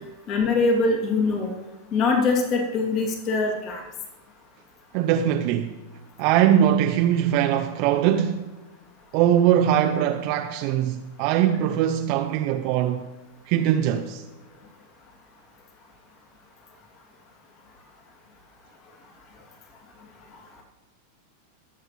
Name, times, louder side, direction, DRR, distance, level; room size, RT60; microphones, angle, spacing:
voice 1, 0.3-1.5 1.9-3.8, left 3 dB, 35° left, 2.5 m, -23 dB
voice 2, 4.9-5.7 6.2-8.4 9.1-13.1 13.5-14.2, right 10 dB, 45° right, 0.6 m, -21 dB
19.5 x 7.9 x 3.2 m
figure-of-eight pair, 90°, 0 cm